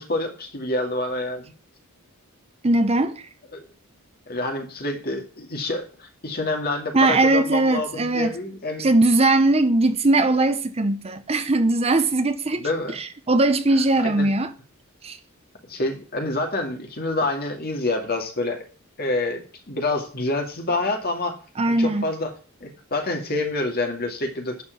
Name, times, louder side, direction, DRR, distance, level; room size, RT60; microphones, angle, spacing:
voice 1, 0.0-1.5 3.5-3.7 4.3-8.9 12.6-13.0 14.0-14.3 15.7-18.7 19.0-21.4 21.7-22.3 22.6-24.6, left 2 dB, 45° left, 2.2 m, -27 dB
voice 2, 2.6-3.3 6.9-8.4 8.8-14.5 15.0-15.2 21.6-22.1, right 2 dB, 30° right, 0.7 m, -20 dB
11.0 x 4.5 x 8.1 m
head